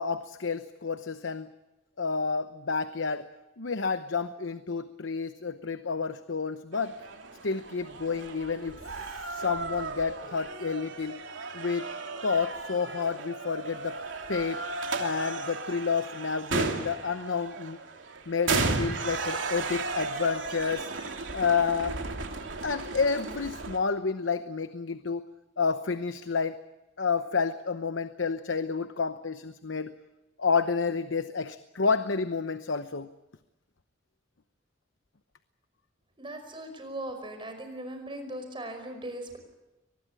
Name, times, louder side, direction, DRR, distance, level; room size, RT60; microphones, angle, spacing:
voice 1, 0.0-1.5 2.0-3.3 3.6-7.0 7.4-11.2 11.5-11.9 12.2-14.0 14.3-14.6 15.0-17.8 18.3-20.9 21.3-22.0 22.6-25.2 25.6-26.6 27.0-29.9 30.4-33.1, left 5 dB, 85° left, 11 dB, 0.9 m, -30 dB
sound 1, 6.7-23.8, right 3 dB, 85° right, 2.9 m, -35 dB
voice 2, 36.2-39.4, right 1 dB, 25° right, 6 dB, 5.2 m, -39 dB
23.5 x 20.5 x 8.9 m, 1.0 s
head